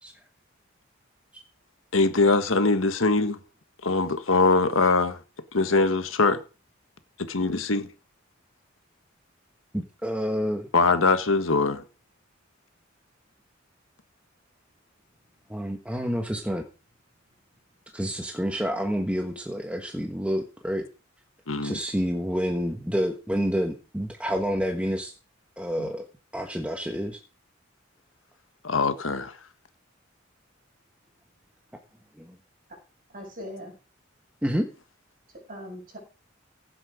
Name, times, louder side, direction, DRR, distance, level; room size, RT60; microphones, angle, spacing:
voice 1, 1.9-3.4 3.8-5.2 5.5-6.4 7.2-7.9 10.7-11.8 21.5-21.8 25.8-25.9 28.6-29.4, left 3 dB, 80° left, 1.5 m, -22 dB
voice 2, 10.0-10.7 15.5-16.7 17.9-20.9 21.6-25.1 25.6-26.1 26.3-27.2 32.2-32.4 34.4-34.7, equal, 5° right, 1.3 m, -28 dB
voice 3, 33.1-33.8 35.3-36.0, equal, 45° right, 6.5 m, -40 dB
16.0 x 7.8 x 5.1 m
head